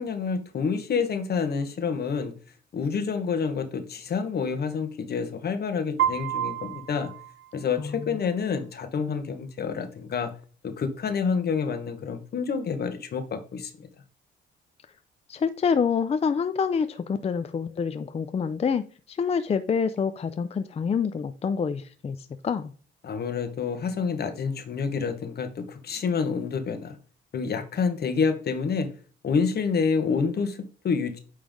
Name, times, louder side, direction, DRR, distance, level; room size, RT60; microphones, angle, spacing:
voice 1, 0.0-2.3 2.7-7.1 7.5-10.3 10.6-13.9 23.0-27.0 27.3-28.9 29.2-31.2, left 5 dB, 55° left, 8 dB, 1.2 m, -28 dB
Piano, 6.0-8.0, right 10 dB, 70° right, 0.9 m, -30 dB
voice 2, 7.8-8.2 15.3-22.2 22.4-22.7, left 6 dB, 30° left, 11 dB, 0.5 m, -27 dB
8.9 x 3.3 x 3.6 m, 0.40 s
cardioid pair, 85°, 20 cm